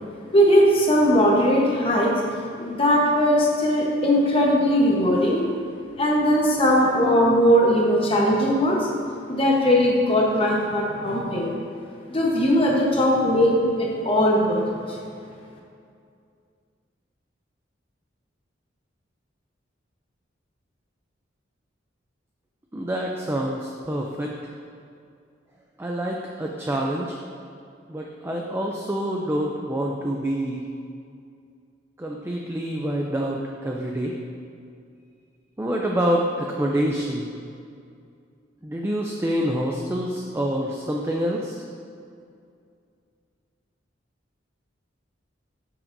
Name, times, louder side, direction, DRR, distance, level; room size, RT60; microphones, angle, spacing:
voice 1, 0.3-2.2 2.6-5.4 6.0-8.9 9.3-11.5 12.1-14.6, equal, 30° left, -2 dB, 1.1 m, -19 dB
voice 2, 22.7-24.3 25.8-27.2 27.9-30.6 32.0-34.2 35.6-37.3 38.6-41.6, equal, 15° right, -1 dB, 0.4 m, -26 dB
12.0 x 5.9 x 2.6 m, 2.4 s
head